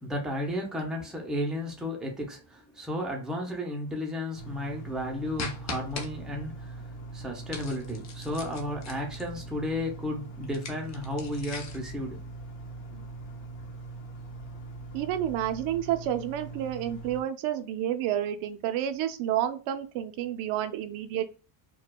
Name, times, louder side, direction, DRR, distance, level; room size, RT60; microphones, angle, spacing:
voice 1, 0.0-12.2 12.9-13.0, left 1 dB, ahead, 0.5 m, -33 dB
sound 1, 4.3-17.2, right 3 dB, 70° left, 1.4 m, -42 dB
sound 2, 5.4-6.1 7.5-9.4 10.4-11.9, left 4 dB, 35° left, 0.7 m, -39 dB
voice 2, 14.9-21.3, right 11 dB, 85° right, 0.7 m, -30 dB
4.7 x 2.2 x 2.2 m
cardioid pair, 165°, 46 cm